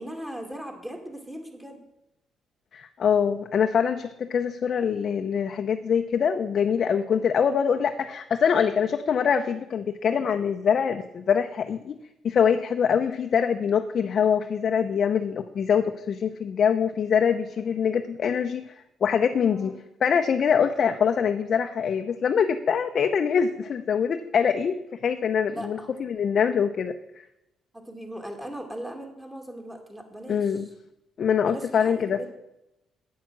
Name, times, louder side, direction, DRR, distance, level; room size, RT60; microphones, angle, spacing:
voice 1, 0.0-1.8 13.1-13.2 19.5-19.8 25.5-25.9 27.7-30.6 31.5-32.3, right 1 dB, 10° right, 3 dB, 2.3 m, -39 dB
voice 2, 2.7-12.0 12.2-18.7 19.0-19.7 20.0-27.2 30.3-30.6 31.2-32.2, left 7 dB, 55° left, 6 dB, 0.6 m, -24 dB
8.8 x 8.3 x 6.2 m, 0.89 s
cardioid pair, 90°, 0 cm